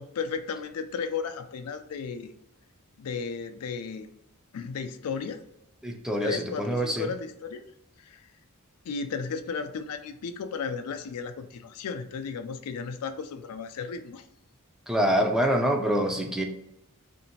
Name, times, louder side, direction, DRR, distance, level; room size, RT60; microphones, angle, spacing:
voice 1, 0.0-2.3 3.0-4.1 4.5-5.4 6.2-7.6 8.0-8.3 8.9-14.2, left 5 dB, 90° left, 8 dB, 0.4 m, -34 dB
voice 2, 5.8-7.1 14.9-16.4, equal, 5° right, 2 dB, 0.3 m, -25 dB
2.8 x 2.6 x 2.8 m, 0.82 s
head